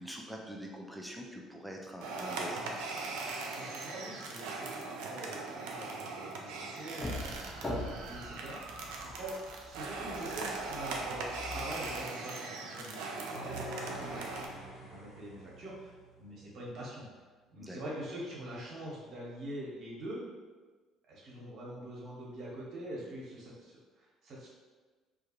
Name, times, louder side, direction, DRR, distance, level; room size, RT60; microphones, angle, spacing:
voice 1, 0.0-2.7 13.9-14.3 17.6-17.8, equal, 5° right, 0 dB, 0.5 m, -44 dB
sound 1, 2.0-14.5, right 3 dB, 75° right, 0.3 m, -40 dB
voice 2, 3.5-17.2 17.5-20.2 21.1-24.5, right 1 dB, 55° right, -5 dB, 1.0 m, -45 dB
sound 2, 7.0-12.0, left 1 dB, 25° left, 0.9 m, -42 dB
sound 3, 13.3-16.5, right 1 dB, 80° left, 1.0 m, -46 dB
2.4 x 2.3 x 2.9 m, 1.3 s
hypercardioid pair, 60°, 0 cm